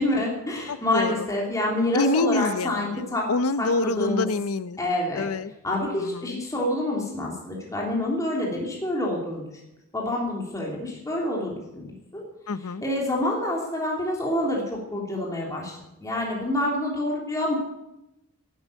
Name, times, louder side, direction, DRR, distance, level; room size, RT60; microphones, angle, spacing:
voice 1, 0.0-3.3 3.6-4.3 4.8-5.3 5.6-9.4 9.9-12.2 12.8-17.6, left 1 dB, 15° left, -2 dB, 3.1 m, -27 dB
voice 2, 0.7-1.3 1.9-4.8 5.1-5.5 6.0-6.4 12.5-12.8, left 3 dB, 90° left, 15 dB, 0.7 m, -26 dB
12.0 x 12.0 x 8.5 m, 0.90 s
head